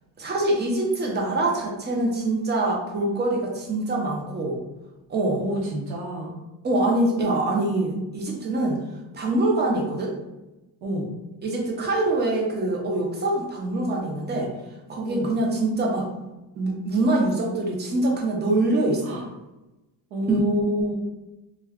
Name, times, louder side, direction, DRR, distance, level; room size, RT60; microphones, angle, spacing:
voice 1, 0.2-4.6 5.1-5.4 6.6-8.8 9.1-10.1 11.4-14.5 14.9-16.1 16.6-19.2 20.3-20.4, right 2 dB, 25° right, -1 dB, 0.6 m, -24 dB
voice 2, 5.4-6.3 10.8-11.1 15.1-15.3 19.0-19.2 20.1-20.9, equal, 65° right, -5 dB, 0.8 m, -28 dB
2.3 x 2.2 x 3.5 m, 1.0 s
cardioid pair, 130°, 43 cm